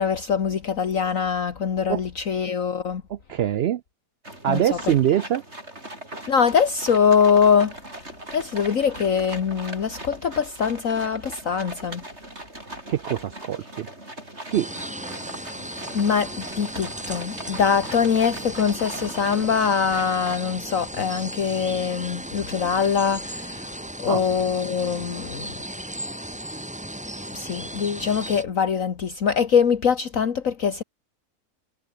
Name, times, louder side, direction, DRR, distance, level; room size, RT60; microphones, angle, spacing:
voice 1, 0.0-3.0 4.5-4.9 6.3-7.7 8.3-12.0 15.9-23.7 24.0-25.5 27.3-30.8, left 6 dB, 55° left, 1.8 m, -23 dB
voice 2, 3.1-3.8 4.4-5.4 12.9-13.9 14.5-14.7 24.1-24.2, right 11 dB, 70° right, 0.6 m, -23 dB
sound 1, 4.2-20.4, right 1 dB, 40° right, 8.4 m, -39 dB
sound 2, 14.5-28.4, right 1 dB, 5° right, 1.1 m, -36 dB
omnidirectional pair, 1.7 m